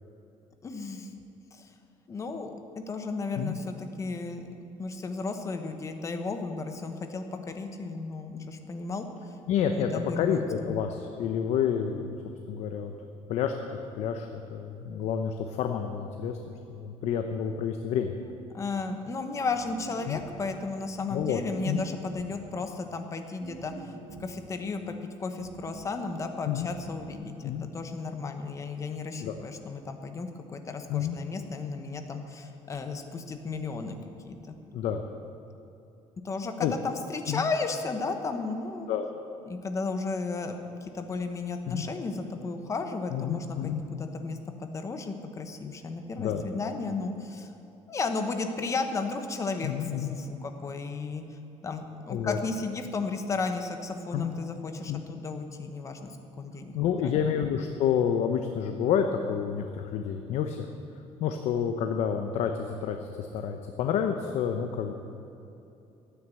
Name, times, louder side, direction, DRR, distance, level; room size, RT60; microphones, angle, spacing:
voice 1, 0.6-1.1 1.5-1.7 2.1-2.5 2.9-4.5 4.8-9.3 9.7-10.4 18.5-23.9 24.2-34.0 34.2-34.6 36.2-38.9 39.4-47.5 47.9-51.2 51.6-56.7 57.0-57.4, left 3 dB, 25° left, 6 dB, 1.1 m, -34 dB
voice 2, 9.5-12.1 12.5-12.9 13.3-18.2 20.1-20.2 21.1-21.4 21.7-21.8 26.5-26.7 27.4-27.6 29.2-29.4 30.9-31.2 34.7-35.0 36.6-36.7 37.3-37.4 38.9-39.1 41.7-41.9 43.1-43.8 46.2-46.4 49.6-50.1 52.1-52.4 54.1-54.4 54.9-55.0 56.7-60.7 61.2-64.9, left 8 dB, 70° left, 5 dB, 0.8 m, -29 dB
sound 1, 19.4-20.6 21.4-22.5 23.4-24.5 25.4-26.0 26.7-27.3, right 4 dB, 80° right, 1.5 m, -45 dB
13.0 x 9.5 x 8.2 m, 2.9 s
cardioid pair, 155°, 12 cm